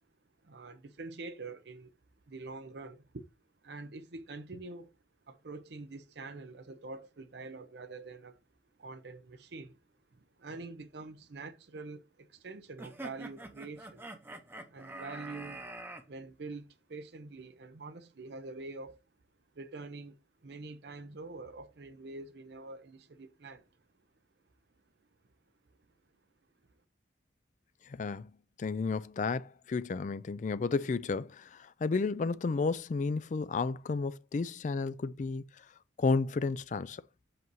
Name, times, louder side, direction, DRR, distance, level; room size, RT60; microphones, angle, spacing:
voice 1, 0.4-1.9 2.3-3.3 3.6-4.9 5.3-8.4 8.8-9.8 10.1-14.1 14.7-15.7 16.1-19.0 19.5-23.7, right 3 dB, 60° right, 0.6 m, -45 dB
sound 1, 12.8-16.0, right 1 dB, 10° right, 0.7 m, -45 dB
voice 2, 27.9-28.3 28.6-35.6 36.0-37.0, left 4 dB, 40° left, 0.3 m, -32 dB
7.8 x 2.7 x 4.5 m
head